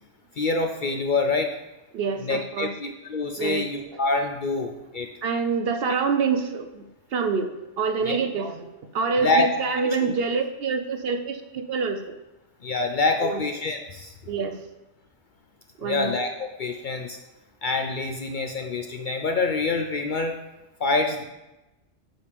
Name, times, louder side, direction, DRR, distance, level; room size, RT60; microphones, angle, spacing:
voice 1, 0.4-1.5 2.2-5.1 8.0-8.2 9.2-9.5 10.0-10.1 12.6-14.1 15.8-17.2 17.6-20.3 20.8-21.2, left 3 dB, 55° left, 4 dB, 0.6 m, -26 dB
voice 2, 1.9-2.7 3.4-3.7 5.2-6.8 7.1-7.5 7.8-12.1 13.2-13.4 14.2-14.6 15.8-16.1, right 5 dB, 60° right, 7 dB, 0.7 m, -26 dB
7.8 x 6.7 x 3.3 m, 1.0 s
omnidirectional pair, 1.2 m